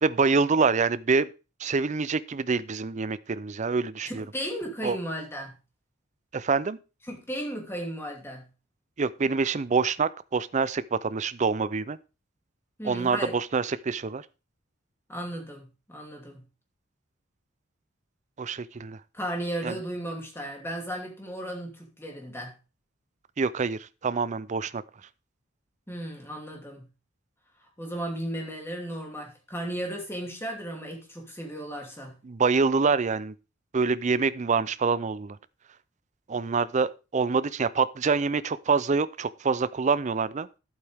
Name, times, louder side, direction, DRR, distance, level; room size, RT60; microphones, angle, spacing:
voice 1, 0.0-1.3 1.6-4.2 4.8-5.0 6.3-6.8 9.0-12.0 12.8-14.2 18.4-19.0 19.6-19.7 23.4-24.8 32.2-33.3 33.7-35.4 36.3-40.5, right 4 dB, 35° right, 0.5 m, -26 dB
voice 2, 4.1-5.5 7.1-8.4 12.8-13.4 15.1-16.4 19.1-22.5 25.9-26.8 27.8-32.1, right 1 dB, 10° left, 2.8 m, -35 dB
11.5 x 8.2 x 3.5 m
head